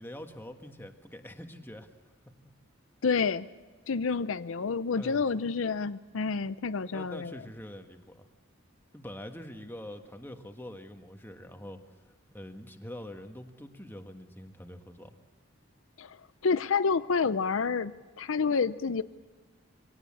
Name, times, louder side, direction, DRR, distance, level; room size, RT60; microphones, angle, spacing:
voice 1, 0.0-1.9 5.0-5.2 6.9-8.3 8.9-11.8 12.0-15.2, left 1 dB, 10° left, 5 dB, 1.4 m, -44 dB
voice 2, 3.0-3.5 3.9-7.3 16.0-16.2 16.4-17.9 18.2-19.0, left 5 dB, 85° left, 14 dB, 0.6 m, -28 dB
23.0 x 18.0 x 8.5 m, 1.3 s
head